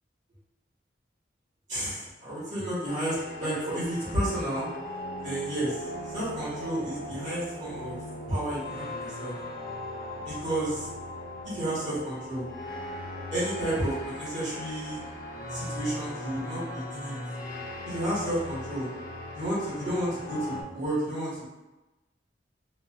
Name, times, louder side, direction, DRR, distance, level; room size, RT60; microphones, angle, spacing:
voice 1, 1.7-4.7 5.2-8.0 8.3-9.3 10.2-10.9 11.4-12.5 13.3-15.0 15.5-17.2 17.9-18.9 19.3-21.4, right 1 dB, 40° right, -9 dB, 1.5 m, -31 dB
sound 1, 2.9-20.6, left 1 dB, 50° left, 0.6 m, -39 dB
3.2 x 2.8 x 2.3 m, 1.1 s
head